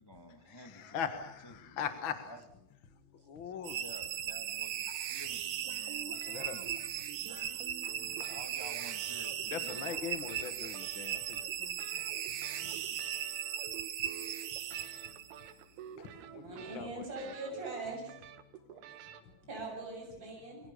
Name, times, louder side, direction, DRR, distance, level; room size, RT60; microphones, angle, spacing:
voice 1, 0.0-1.9 2.3-2.4 3.2-6.8 7.1-9.9, equal, 20° left, 6 dB, 0.6 m, -53 dB
voice 2, 0.6-2.3 3.3-3.7 6.3-6.6 9.4-11.4 16.3-17.3, left 8 dB, 50° left, 9 dB, 1.5 m, -40 dB
sound 1, 3.6-15.5, right 10 dB, 60° right, 2.4 m, -38 dB
sound 2, 5.6-19.2, right 9 dB, 90° right, 3.4 m, -50 dB
voice 3, 16.3-18.1 19.5-20.6, right 3 dB, 25° right, 0 dB, 7.6 m, -41 dB
28.5 x 23.0 x 6.8 m, 0.70 s
omnidirectional pair, 4.5 m